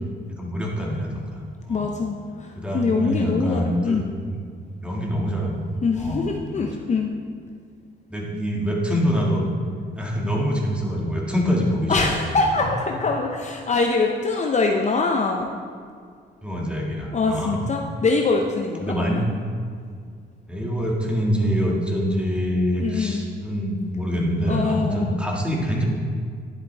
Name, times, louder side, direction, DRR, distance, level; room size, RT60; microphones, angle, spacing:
voice 1, 0.4-1.4 1.7-2.0 2.6-4.4 4.8-5.6 5.9-6.7 8.1-9.5 10.0-12.0 12.5-12.6 16.4-17.6 18.8-19.2 20.5-25.8, equal, 5° right, -2 dB, 1.9 m, -25 dB
voice 2, 1.7-4.1 5.8-7.1 11.9-15.5 17.1-19.2 22.8-23.2 24.4-25.2, left 4 dB, 35° left, 2 dB, 0.7 m, -23 dB
11.0 x 7.6 x 3.4 m, 2.1 s
cardioid pair, 90°, 20 cm